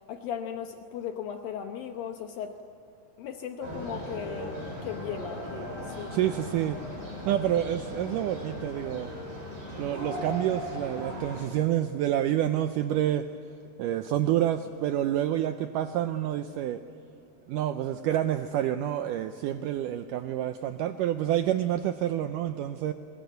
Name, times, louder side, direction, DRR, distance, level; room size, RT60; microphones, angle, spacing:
voice 1, 0.1-2.6 3.2-6.2, left 8 dB, 70° left, 5 dB, 2.5 m, -37 dB
sound 1, 3.6-11.4, equal, 50° right, 9.2 m, -38 dB
voice 2, 6.1-7.0 7.2-9.1 9.8-13.2 13.8-16.8 17.5-22.9, right 11 dB, 85° right, 9 dB, 1.8 m, -28 dB
22.5 x 21.0 x 9.2 m, 2.9 s
omnidirectional pair, 4.5 m